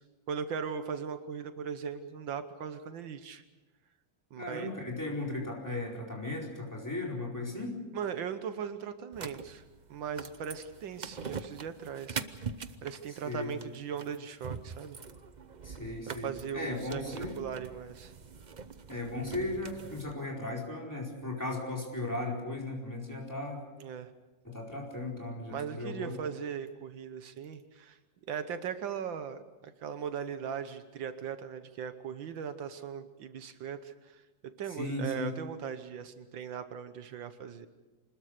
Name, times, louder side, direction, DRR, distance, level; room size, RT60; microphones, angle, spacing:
voice 1, 0.3-3.4 4.3-4.7 7.9-9.6 9.9-12.2 12.8-15.0 16.1-17.1 17.4-18.1 23.8-24.1 25.5-28.0 28.3-37.7, right 7 dB, 80° right, 10 dB, 1.8 m, -39 dB
voice 2, 4.4-7.8 13.1-13.5 15.6-17.4 18.9-23.6 24.4-26.2 34.7-35.3, left 2 dB, 10° left, -2 dB, 4.6 m, -36 dB
sound 1, 9.1-20.1, right 5 dB, 60° right, 0.4 m, -43 dB
25.5 x 20.5 x 6.6 m, 1.2 s
omnidirectional pair, 2.1 m